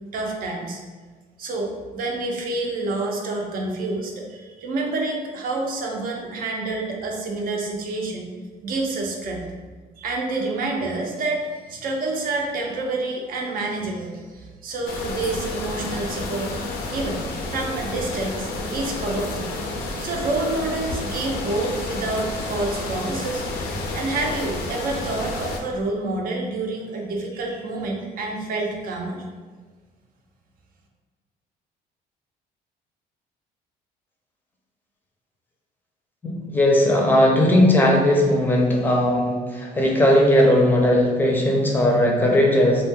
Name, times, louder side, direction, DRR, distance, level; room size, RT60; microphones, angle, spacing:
voice 1, 0.1-0.8 1.4-8.3 8.6-9.4 10.0-16.6 16.9-17.2 17.5-19.5 20.0-23.4 23.9-29.2, right 2 dB, 60° right, 0 dB, 0.5 m, -28 dB
sound 1, 14.9-25.6, left 2 dB, 70° left, 0.5 m, -30 dB
voice 2, 36.2-42.8, left 1 dB, 10° left, -1 dB, 0.5 m, -18 dB
2.3 x 2.1 x 3.4 m, 1.4 s
cardioid pair, 110°, 17 cm